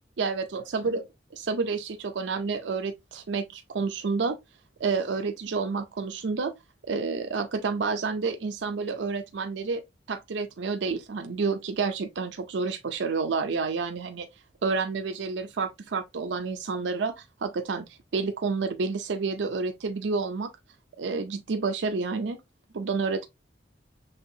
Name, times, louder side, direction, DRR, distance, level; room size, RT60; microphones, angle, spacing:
voice 1, 0.2-4.4 4.8-6.5 6.9-9.8 10.1-14.3 14.6-17.9 18.1-20.5 21.0-22.4 22.7-23.3, right 4 dB, 90° right, 0.5 m, -29 dB
5.6 x 3.4 x 2.7 m
head